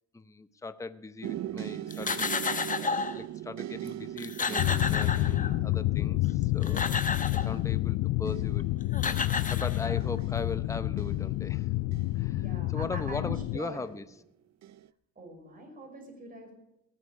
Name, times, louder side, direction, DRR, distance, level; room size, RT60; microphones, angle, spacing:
voice 1, 0.1-8.6 9.5-11.7 12.1-14.0, left 3 dB, 10° left, 12 dB, 0.7 m, -39 dB
sound 1, 1.2-13.1 13.8-14.2 14.6-14.9, right 12 dB, 65° right, 0.6 m, -42 dB
sound 2, 1.9-3.2 3.9-4.0 4.2-5.7 6.4-7.6 8.6-8.7 8.9-10.2, left 4 dB, 25° left, 1.1 m, -32 dB
sound 3, 4.6-13.6, left 18 dB, 85° left, 0.5 m, -29 dB
voice 2, 9.8-10.3 12.4-14.0 15.1-16.5, right 2 dB, 30° right, 1 dB, 6.2 m, -44 dB
19.0 x 8.3 x 5.5 m, 0.89 s
cardioid pair, 90°, 30 cm